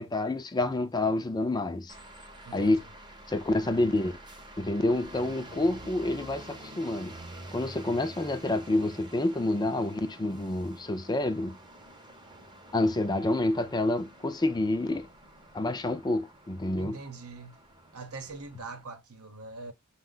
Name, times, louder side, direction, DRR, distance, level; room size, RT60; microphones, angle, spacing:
voice 1, 0.0-1.9 2.5-2.8 3.3-4.1 4.6-7.1 7.5-11.6 12.7-15.1 15.5-17.0, left 2 dB, 20° left, 0.4 m, -28 dB
sound 1, 1.9-18.8, right 1 dB, 20° right, 0.7 m, -48 dB
voice 2, 2.4-2.8 16.8-17.6 17.9-19.7, right 3 dB, 75° right, 0.9 m, -42 dB
5.2 x 2.2 x 3.8 m
head